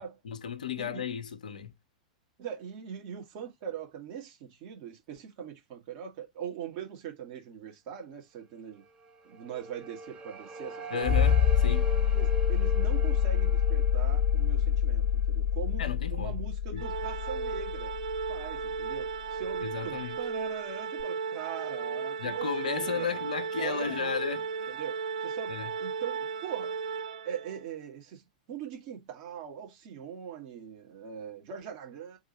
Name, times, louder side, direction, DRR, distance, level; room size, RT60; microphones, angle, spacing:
voice 1, 0.0-1.7 10.9-11.9 15.8-16.4 16.7-16.8 19.6-20.2 22.2-24.8 25.5-25.7, left 7 dB, 75° left, 0.6 m, -34 dB
voice 2, 2.4-8.8 9.2-11.2 12.1-15.8 16.1-17.9 18.3-23.1 23.6-24.1 24.7-26.8 27.2-32.2, right 8 dB, 50° right, 1.7 m, -41 dB
sound 1, 9.0-16.0, right 2 dB, 20° right, 0.8 m, -41 dB
sound 2, 11.0-19.5 21.0-21.1, left 9 dB, 25° left, 0.5 m, -26 dB
Organ, 16.8-27.6, right 5 dB, 70° right, 0.5 m, -35 dB
3.6 x 2.7 x 4.3 m
hypercardioid pair, 100°, 4 cm